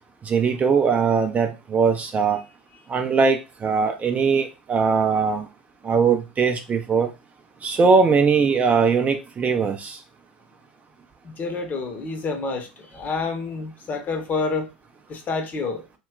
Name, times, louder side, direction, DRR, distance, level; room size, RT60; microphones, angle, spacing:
voice 1, 0.2-2.4 2.9-5.5 5.8-7.1 7.6-10.0, right 5 dB, 25° right, 0.4 m, -20 dB
voice 2, 11.2-14.7 15.1-15.8, left 4 dB, 30° left, 0.8 m, -28 dB
2.2 x 2.1 x 3.6 m
figure-of-eight pair, 80°, 6 cm